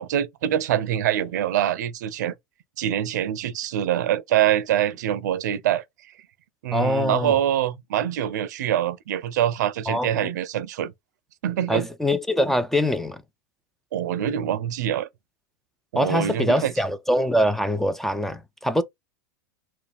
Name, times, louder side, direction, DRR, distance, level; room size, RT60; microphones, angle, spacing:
voice 1, 0.0-2.3 2.8-5.8 6.6-10.9 11.4-11.9 13.9-15.1 15.9-16.7, right 11 dB, 70° right, 0.5 m, -24 dB
voice 2, 6.7-7.3 9.9-10.3 11.7-13.2 16.0-18.8, left 1 dB, 5° left, 0.4 m, -23 dB
4.4 x 2.2 x 3.3 m
hypercardioid pair, 100°, 10 cm